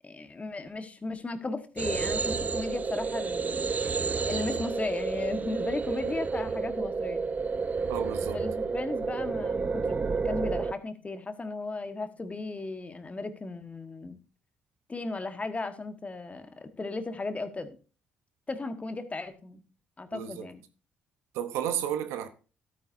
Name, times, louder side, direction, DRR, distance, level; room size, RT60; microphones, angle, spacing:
voice 1, 0.0-3.7 4.3-7.2 8.3-14.2 14.9-17.8 18.5-19.6 20.0-20.6, left 3 dB, 30° left, 1.4 m, -36 dB
sound 1, 1.8-10.7, right 4 dB, 35° right, 0.6 m, -30 dB
voice 2, 7.9-8.4 20.1-20.4 21.3-22.3, right 10 dB, 80° right, 0.8 m, -32 dB
12.5 x 9.1 x 2.7 m
hypercardioid pair, 50°, 5 cm